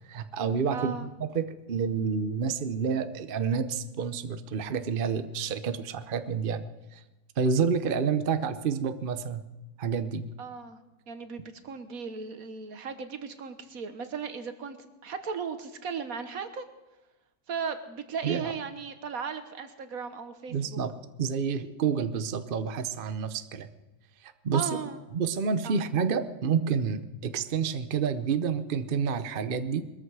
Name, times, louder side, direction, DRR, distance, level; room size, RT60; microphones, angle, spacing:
voice 1, 0.1-7.0 7.4-9.4 9.8-10.2 18.2-18.5 20.5-23.7 24.2-24.7 25.1-29.8, right 6 dB, 45° right, 10 dB, 0.8 m, -29 dB
voice 2, 0.7-1.1 10.4-10.8 11.1-16.6 17.5-20.8 24.5-25.0 25.6-25.8, right 6 dB, 70° right, 9 dB, 1.6 m, -36 dB
21.5 x 14.0 x 4.8 m, 1.0 s
omnidirectional pair, 1.6 m